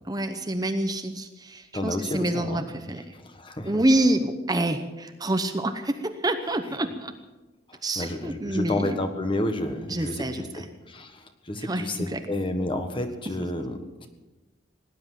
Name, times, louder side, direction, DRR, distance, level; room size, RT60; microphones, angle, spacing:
voice 1, 0.1-3.0 3.6-7.1 7.8-9.0 9.9-10.4 11.6-12.2, right 1 dB, 20° right, 7 dB, 0.9 m, -27 dB
voice 2, 1.7-3.8 7.7-14.1, left 1 dB, 30° left, 7 dB, 1.5 m, -31 dB
18.0 x 10.5 x 7.5 m, 1.2 s
head